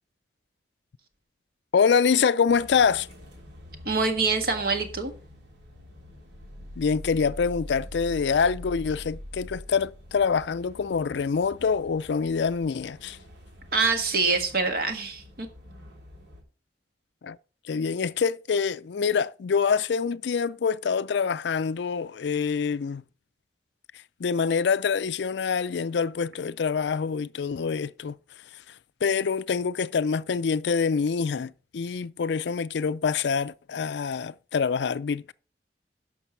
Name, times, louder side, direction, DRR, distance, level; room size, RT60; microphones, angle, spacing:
voice 1, 1.7-3.1 6.8-13.2 17.2-17.4 17.7-23.0 24.2-28.2 28.5-28.6 29.0-35.3, left 6 dB, 75° left, 0.4 m, -25 dB
sound 1, 2.5-16.4, left 1 dB, 85° right, 3.2 m, -44 dB
voice 2, 3.8-5.1 13.7-15.5, right 4 dB, 55° right, 1.7 m, -25 dB
11.0 x 6.6 x 4.5 m
head